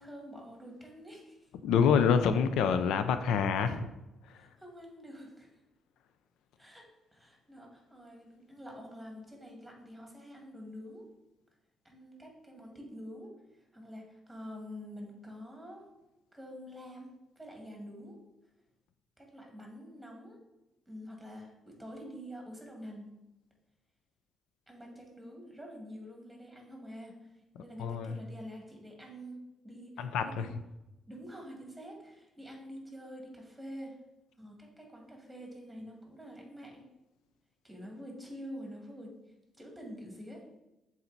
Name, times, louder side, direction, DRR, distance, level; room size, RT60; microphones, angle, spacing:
voice 1, 0.0-1.5 4.4-5.5 6.6-11.1 11.8-15.9 16.3-18.2 19.2-20.4 20.9-23.1 24.7-30.5 31.1-34.0 34.4-36.9 37.6-39.2 39.6-40.4, equal, 5° right, 0 dB, 2.0 m, -47 dB
voice 2, 1.6-3.9 4.3-4.4 27.8-28.2 30.0-30.5, left 6 dB, 85° left, 10 dB, 0.4 m, -27 dB
7.0 x 4.2 x 4.0 m, 0.96 s
cardioid pair, 90°, 0 cm